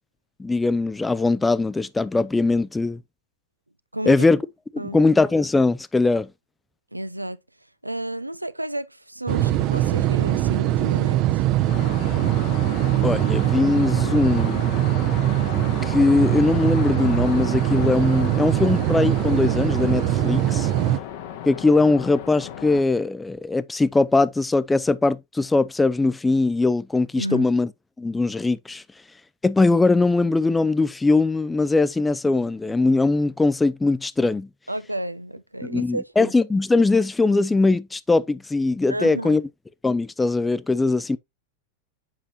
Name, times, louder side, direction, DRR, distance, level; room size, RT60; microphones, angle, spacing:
voice 1, 0.4-3.0 4.1-4.4 4.7-6.3 13.0-14.6 15.8-20.7 21.5-27.7 28.0-28.8 29.4-34.5 35.6-39.4 39.8-41.2, left 3 dB, 10° left, 0.4 m, -21 dB
voice 2, 3.9-4.2 4.8-5.0 6.9-7.4 7.8-11.4 27.2-27.5 34.7-36.3 38.9-39.4, right 1 dB, 85° right, 0.4 m, -31 dB
sound 1, 9.3-21.0, right 14 dB, 40° right, 0.6 m, -22 dB
sound 2, 11.7-22.8, left 10 dB, 50° left, 1.1 m, -35 dB
7.4 x 5.4 x 2.7 m
figure-of-eight pair, 90°, 0 cm